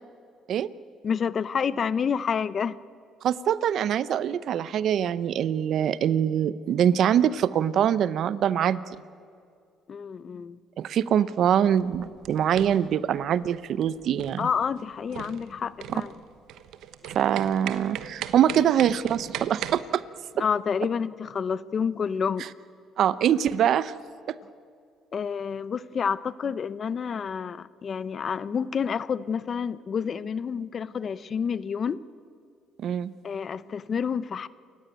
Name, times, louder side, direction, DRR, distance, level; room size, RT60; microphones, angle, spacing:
voice 1, 1.0-2.8 9.9-10.6 14.4-16.1 20.4-22.5 25.1-32.0 33.2-34.5, left 6 dB, 45° left, 17 dB, 0.7 m, -29 dB
voice 2, 3.2-8.8 10.8-14.5 15.9-16.0 17.1-20.0 23.0-23.9 24.3-24.4 32.8-33.1, right 9 dB, 65° right, 16 dB, 0.8 m, -24 dB
sound 1, 11.8-19.8, right 11 dB, 80° right, 1.1 m, -39 dB
28.5 x 15.0 x 9.3 m, 2.3 s
cardioid pair, 100°, 0 cm